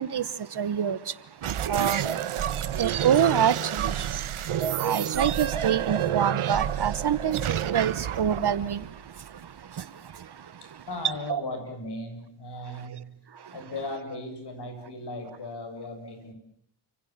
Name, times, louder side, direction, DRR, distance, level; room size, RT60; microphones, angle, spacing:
voice 1, 0.0-10.6 11.3-11.4 13.3-13.5, right 8 dB, 50° right, 1.1 m, -28 dB
sound 1, 1.4-9.6, right 10 dB, 75° right, 1.5 m, -29 dB
voice 2, 10.6-13.2 13.5-16.3, left 2 dB, 50° left, 7.2 m, -37 dB
29.5 x 26.0 x 7.3 m
wide cardioid pair, 150°, 50 cm